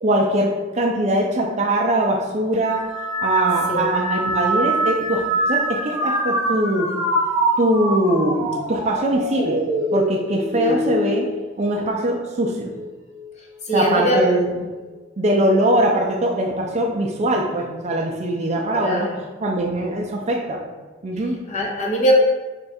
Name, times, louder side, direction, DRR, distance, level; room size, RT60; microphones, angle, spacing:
voice 1, 0.0-2.9 3.2-6.9 7.6-9.6 9.9-11.3 11.6-12.7 13.7-14.6 15.2-19.1 19.4-20.6 21.0-21.3, right 1 dB, 35° right, 1 dB, 0.4 m, -21 dB
sound 1, 2.6-12.2 12.7-13.3 14.2-14.6, right 1 dB, 15° right, 0.8 m, -25 dB
voice 2, 13.7-14.2 18.7-19.2 21.5-22.1, right 1 dB, 40° left, -2 dB, 0.7 m, -21 dB
3.6 x 2.3 x 4.2 m, 1.3 s
head